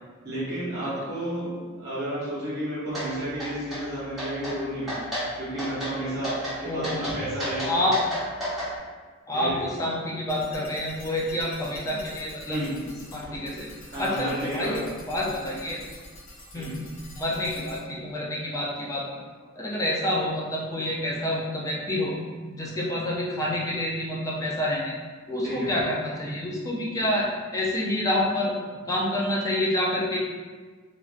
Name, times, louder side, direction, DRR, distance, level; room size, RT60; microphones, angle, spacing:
voice 1, 0.2-6.3 6.6-7.8 9.3-9.6 12.4-12.8 13.9-14.8 16.5-16.8 25.4-25.7, right 1 dB, 45° right, -9 dB, 0.9 m, -32 dB
sound 1, 2.9-3.1 3.4-3.8 4.2-4.5 4.9-5.3 5.6-5.9 6.2-6.6 6.8-8.7, equal, ahead, 0.9 m, -31 dB
voice 2, 6.6-7.0 7.6-8.0 9.3-12.6 13.1-13.7 14.0-14.8 15.1-15.8 16.5-16.8 17.2-19.0 19.6-22.2 22.6-24.9 25.3-28.5 28.9-30.2, left 1 dB, 15° left, -4 dB, 0.4 m, -28 dB
sound 2, 10.3-17.8, left 1 dB, 75° left, 0.8 m, -46 dB
3.0 x 2.5 x 2.4 m, 1.5 s
head